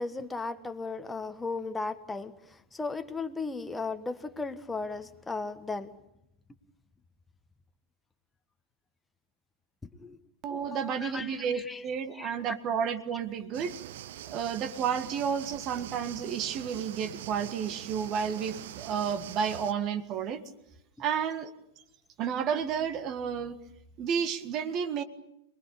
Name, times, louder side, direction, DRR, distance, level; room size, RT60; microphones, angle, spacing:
voice 1, 0.0-2.3 2.7-5.9 10.0-10.2 10.7-11.8 12.1-12.5, left 3 dB, 10° left, 8 dB, 1.5 m, -36 dB
voice 2, 10.4-13.7 14.3-20.4 21.0-21.5 22.2-23.6 24.0-25.0, right 7 dB, 35° right, 12 dB, 1.8 m, -31 dB
sound 1, 13.5-19.7, right 12 dB, 55° right, 0.9 m, -44 dB
27.0 x 20.5 x 8.7 m, 0.81 s
figure-of-eight pair, 90°, 0 cm